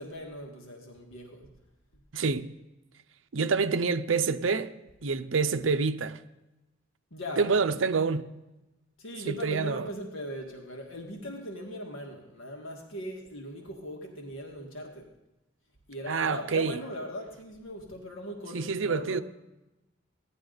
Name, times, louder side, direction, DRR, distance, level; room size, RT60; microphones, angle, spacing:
voice 1, 0.0-1.5 7.1-7.6 9.0-15.1 15.9-19.2, equal, 85° left, 1.7 m, -39 dB
voice 2, 2.1-2.5 3.3-4.7 5.0-6.2 7.4-8.3 9.2-9.9 16.1-16.7 18.5-19.2, right 4 dB, 70° right, 0.6 m, -27 dB
16.5 x 11.0 x 3.9 m
head